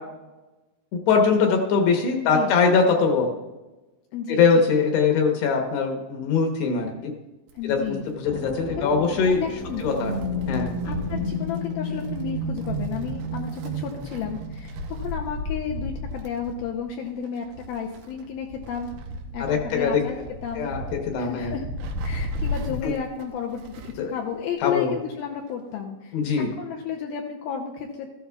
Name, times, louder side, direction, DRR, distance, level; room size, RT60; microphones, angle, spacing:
voice 1, 0.9-3.3 4.3-7.1 7.6-8.0 8.2-9.4 9.8-10.1 10.5-10.7 19.4-20.3 20.6-21.5 22.8-22.9 24.0-24.1 24.6-24.9 26.1-26.5, left 5 dB, 75° left, 2 dB, 2.9 m, -22 dB
voice 2, 2.1-2.6 4.1-4.4 7.6-8.1 8.8-9.9 10.8-18.9 19.3-20.2 20.4-20.7 21.2-21.6 22.0-28.1, left 7 dB, 90° left, 0 dB, 2.1 m, -32 dB
Wind, 7.5-24.1 24.4-24.5 25.5-25.6, left 1 dB, 85° right, 3.2 m, -36 dB
sound 1, 8.3-16.0, equal, 65° right, 2.7 m, -32 dB
14.5 x 12.5 x 2.3 m, 1.1 s
omnidirectional pair, 5.2 m